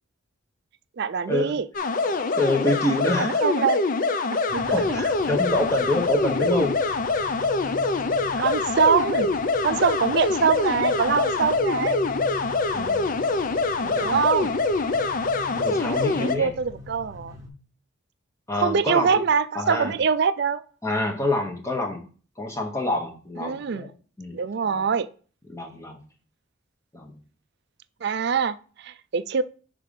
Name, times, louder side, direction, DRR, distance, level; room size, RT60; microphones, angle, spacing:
voice 1, 1.0-1.7 3.2-3.8 4.5-4.6 6.4-6.5 8.4-9.3 9.6-12.0 14.0-14.5 16.2-17.4 18.6-20.6 23.4-23.9 24.3-25.1 28.0-29.4, right 6 dB, 50° right, 0.4 m, -24 dB
sound 1, 1.7-16.4, left 3 dB, 40° left, 0.4 m, -24 dB
voice 2, 2.3-3.5 4.7-6.9 12.7-13.1 13.8-14.2 15.5-16.5 18.5-19.2 19.5-19.9 20.8-22.0 22.4-23.9 24.2-24.8 25.5-26.0 26.9-27.2, left 1 dB, 15° left, 0.9 m, -27 dB
sound 2, 4.5-17.5, left 2 dB, 15° right, 1.1 m, -42 dB
5.7 x 3.7 x 5.2 m
head